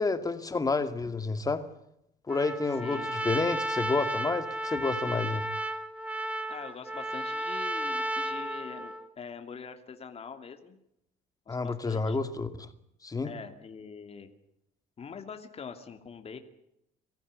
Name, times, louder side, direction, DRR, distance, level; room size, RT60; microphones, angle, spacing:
voice 1, 0.0-1.6 2.3-5.5 11.5-12.7 13.0-13.3, left 3 dB, 20° left, 9 dB, 2.3 m, -30 dB
Trumpet, 2.3-9.1, right 1 dB, 10° right, 1.7 m, -33 dB
voice 2, 6.5-10.8 11.5-12.2 13.2-14.3 15.0-16.4, left 6 dB, 35° left, 6 dB, 2.7 m, -44 dB
24.0 x 15.0 x 9.7 m, 0.78 s
cardioid pair, 110°, 17 cm